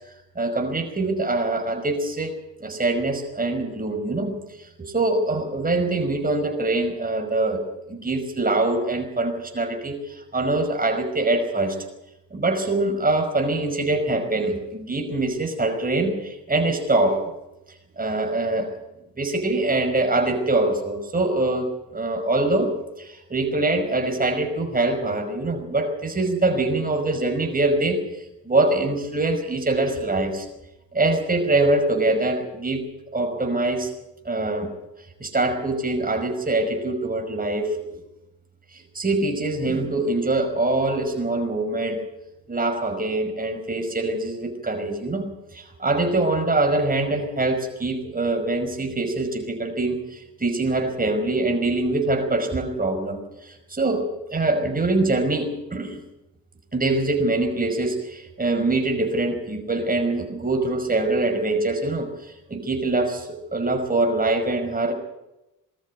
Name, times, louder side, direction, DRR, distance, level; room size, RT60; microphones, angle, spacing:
voice 1, 0.4-2.3 2.6-4.3 4.6-7.6 7.9-11.8 12.3-17.2 18.0-18.7 19.2-22.7 23.0-28.0 28.4-30.5 30.9-32.8 33.1-33.9 34.2-34.7 35.2-38.0 38.7-42.0 42.5-45.2 45.5-54.0 54.3-56.0 56.7-64.9, right 2 dB, 20° right, 5 dB, 5.4 m, -24 dB
21.0 x 13.5 x 9.4 m, 0.96 s
cardioid pair, 75°, 38 cm